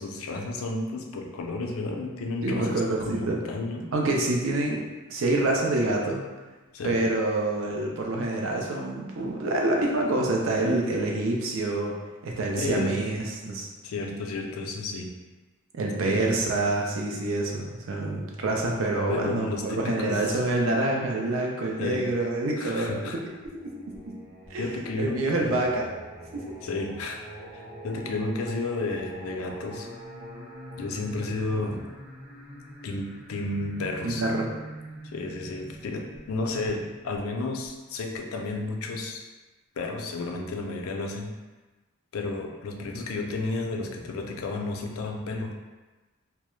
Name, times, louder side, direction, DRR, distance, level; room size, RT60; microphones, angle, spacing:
voice 1, 0.0-3.9 6.7-7.0 12.6-13.0 13.8-15.1 16.1-16.2 19.1-20.3 21.8-22.1 22.6-23.2 24.6-25.5 26.6-27.2 27.5-29.9 30.8-31.8 32.8-34.2 35.1-39.2 39.8-41.3 42.1-45.5, left 2 dB, 90° left, 2 dB, 0.4 m, -32 dB
voice 2, 2.4-3.4 3.9-4.8 5.1-6.2 6.8-12.0 12.2-13.7 15.7-23.2 23.6-24.2 24.5-24.7 25.0-25.9 26.3-26.5 34.0-34.5, right 2 dB, 75° right, 0 dB, 0.5 m, -27 dB
Singing, 23.4-38.2, equal, 5° right, 0.4 m, -44 dB
2.3 x 2.0 x 3.0 m, 1.2 s
head